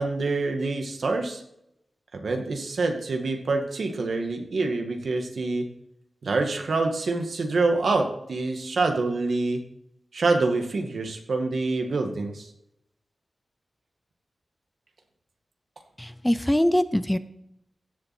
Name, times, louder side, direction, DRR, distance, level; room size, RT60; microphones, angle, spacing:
voice 1, 0.0-1.4 2.1-5.7 6.2-9.6 10.1-12.5, right 3 dB, 80° right, 4 dB, 2.0 m, -26 dB
voice 2, 16.0-17.2, left 1 dB, 10° left, 12 dB, 0.7 m, -23 dB
16.5 x 7.5 x 4.4 m, 0.78 s
wide cardioid pair, 90°, 0 cm